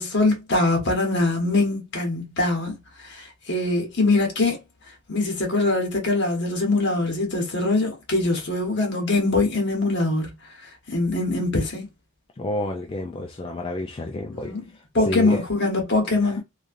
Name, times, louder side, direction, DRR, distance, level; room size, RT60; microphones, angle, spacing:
voice 1, 0.0-2.8 3.0-4.6 5.1-10.3 10.9-11.9 14.3-14.7 14.9-16.4, left 2 dB, 55° left, 1.1 m, -23 dB
voice 2, 12.4-14.5 15.1-15.4 16.2-16.4, left 2 dB, 25° left, 0.3 m, -29 dB
3.1 x 2.4 x 2.6 m
head